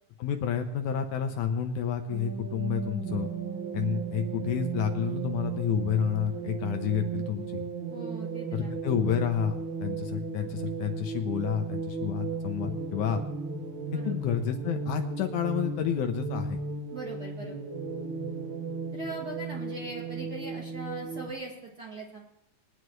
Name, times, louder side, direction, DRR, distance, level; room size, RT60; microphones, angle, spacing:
voice 1, 0.2-3.3 3.7-7.7 8.5-9.6 9.8-13.2 14.1-16.6, left 8 dB, 75° left, 6 dB, 2.1 m, -30 dB
sound 1, 2.1-21.3, right 5 dB, 75° right, 1.1 m, -35 dB
voice 2, 7.9-8.7 13.9-14.2 16.9-17.6 18.9-22.2, right 3 dB, 30° right, -3 dB, 2.5 m, -41 dB
21.5 x 9.7 x 3.1 m, 0.83 s
omnidirectional pair, 3.8 m